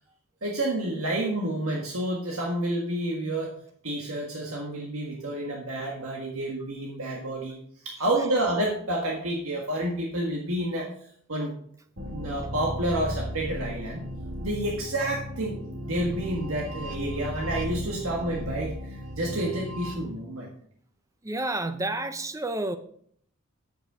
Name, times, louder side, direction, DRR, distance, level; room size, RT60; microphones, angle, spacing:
voice 1, 0.4-3.5 3.8-7.6 7.9-10.9 11.3-11.5 12.1-14.0 14.4-15.6 15.9-20.5, right 1 dB, 80° right, -2 dB, 1.6 m, -29 dB
sound 1, 12.0-20.0, equal, 60° right, 1.7 m, -36 dB
voice 2, 21.2-22.8, right 2 dB, 15° right, 10 dB, 0.6 m, -30 dB
9.3 x 8.1 x 5.0 m, 0.63 s
head